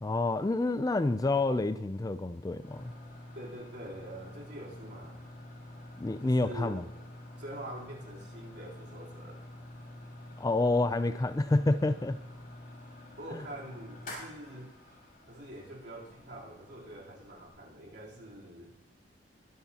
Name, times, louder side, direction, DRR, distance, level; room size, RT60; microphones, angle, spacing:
voice 1, 0.0-2.9 5.9-6.8 10.4-12.2 13.3-13.4, left 2 dB, 20° left, 12 dB, 0.4 m, -28 dB
sound 1, 2.6-17.5, left 1 dB, 50° left, 6.0 m, -48 dB
voice 2, 3.3-5.2 6.2-6.8 7.4-9.4 13.2-14.8 15.3-18.8, right 1 dB, 65° right, -4 dB, 3.5 m, -45 dB
21.5 x 11.0 x 2.9 m, 0.91 s
head